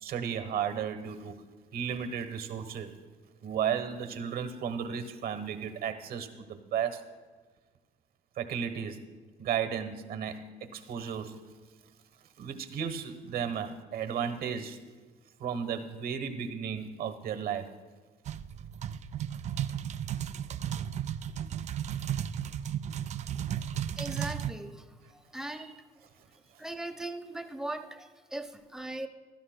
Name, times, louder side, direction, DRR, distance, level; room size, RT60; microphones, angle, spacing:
voice 1, 0.0-1.3 1.7-2.9 3.4-7.0 8.4-9.0 9.4-11.4 12.4-14.8 15.4-17.7, right 8 dB, 65° right, 9 dB, 1.1 m, -34 dB
sound 1, 18.3-24.5, right 9 dB, 45° right, 0.4 m, -34 dB
voice 2, 24.0-25.9 26.6-29.1, right 2 dB, 5° right, 7 dB, 0.7 m, -39 dB
16.0 x 12.5 x 2.2 m, 1.4 s
cardioid pair, 110°, 17 cm